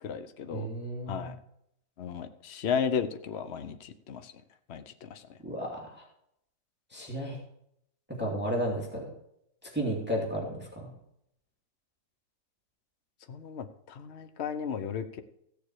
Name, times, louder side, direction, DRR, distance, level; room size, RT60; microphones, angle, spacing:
voice 1, 0.0-0.7 1.1-1.4 2.0-4.3 4.7-5.3 13.3-15.2, left 7 dB, 50° left, 9 dB, 0.9 m, -34 dB
voice 2, 0.5-1.3 5.4-6.1 6.9-7.4 8.1-9.1 9.6-10.9, equal, 5° right, -2 dB, 2.5 m, -33 dB
15.5 x 7.1 x 4.8 m, 0.75 s
omnidirectional pair, 2.1 m